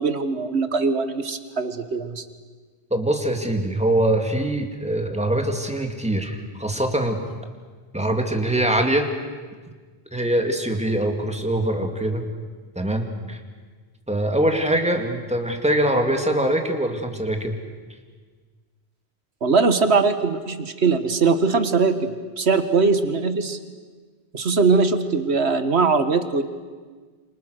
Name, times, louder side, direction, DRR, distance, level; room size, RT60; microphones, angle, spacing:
voice 1, 0.0-2.2 19.4-23.6 24.3-26.4, right 4 dB, 80° right, 10 dB, 1.8 m, -21 dB
voice 2, 2.9-7.2 7.9-9.1 10.1-12.2 12.8-13.4 14.1-17.5, right 1 dB, 5° right, 4 dB, 2.4 m, -23 dB
28.5 x 26.5 x 6.6 m, 1.5 s
omnidirectional pair, 1.1 m